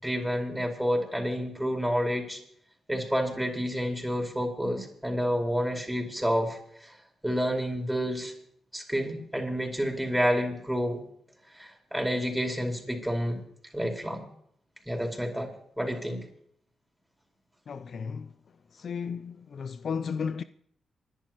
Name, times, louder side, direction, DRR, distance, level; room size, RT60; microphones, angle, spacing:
voice 1, 0.0-2.4 2.9-6.9 7.2-8.3 8.7-11.0 11.5-13.4 13.7-14.2 14.9-15.5 15.8-16.2, equal, 5° right, 4.8 m, -29 dB
voice 2, 17.7-18.1 18.8-19.3 19.6-20.4, left 6 dB, 60° left, 0.5 m, -33 dB
27.5 x 11.5 x 3.0 m
supercardioid pair, 50°, 0 cm